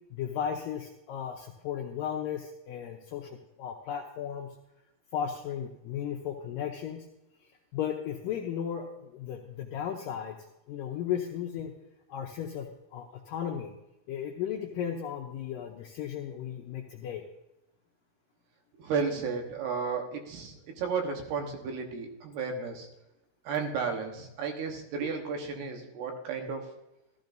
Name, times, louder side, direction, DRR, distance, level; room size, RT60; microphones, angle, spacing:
voice 1, 0.1-4.5 5.1-7.1 7.7-10.4 10.7-11.7 12.1-13.7 14.1-17.2, left 9 dB, 75° left, 1 dB, 2.0 m, -35 dB
voice 2, 18.8-22.9 23.4-26.7, right 5 dB, 75° right, 3 dB, 3.2 m, -33 dB
14.5 x 13.5 x 2.6 m, 0.89 s
omnidirectional pair, 4.7 m